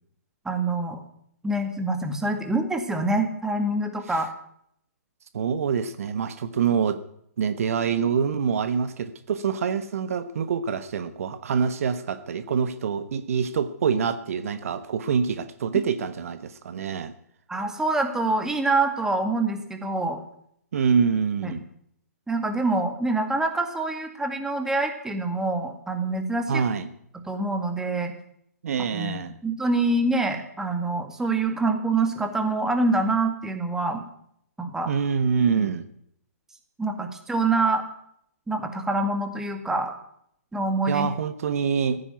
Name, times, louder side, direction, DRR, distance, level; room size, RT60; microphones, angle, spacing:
voice 1, 0.5-1.0 1.4-4.3 17.5-20.2 21.4-21.6 22.3-26.6 27.2-28.1 28.9-34.0 34.6-34.9 36.8-37.8 38.5-39.9 40.5-41.1, right 2 dB, 5° right, 5 dB, 2.1 m, -25 dB
voice 2, 5.3-7.0 7.4-17.1 20.7-21.6 26.5-26.9 28.6-29.3 34.9-35.9 40.9-42.0, right 6 dB, 60° right, 12 dB, 1.2 m, -25 dB
15.0 x 10.0 x 9.4 m, 0.71 s
hypercardioid pair, 130°, 9 cm